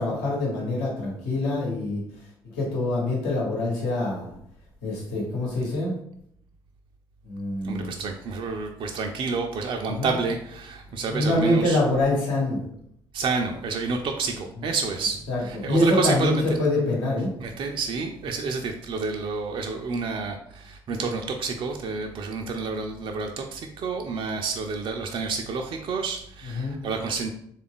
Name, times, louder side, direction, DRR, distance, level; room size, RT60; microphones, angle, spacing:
voice 1, 0.0-2.0 2.5-4.3 4.8-6.0 7.3-7.9 9.9-10.1 11.1-12.6 15.3-17.3 26.5-26.8, left 1 dB, 75° left, -3 dB, 1.1 m, -25 dB
voice 2, 7.6-11.8 13.1-16.4 17.4-27.3, right 4 dB, 45° right, 3 dB, 0.4 m, -29 dB
3.3 x 2.4 x 3.6 m, 0.71 s
hypercardioid pair, 50°, 12 cm